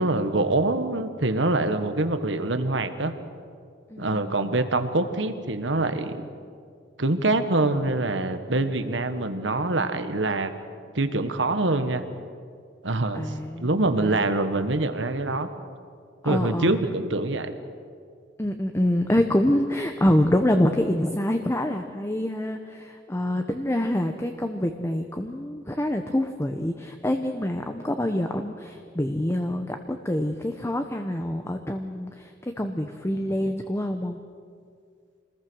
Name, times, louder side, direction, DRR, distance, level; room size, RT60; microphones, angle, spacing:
voice 1, 0.0-3.1 4.0-6.2 7.0-10.5 10.9-12.0 12.8-15.5 16.2-17.5, right 2 dB, 75° right, 9 dB, 1.5 m, -25 dB
voice 2, 3.9-4.6 9.4-9.6 13.1-14.2 16.2-16.8 18.4-32.3 32.6-34.2, left 1 dB, 15° left, 6 dB, 0.9 m, -26 dB
26.5 x 20.0 x 6.4 m, 2.2 s
head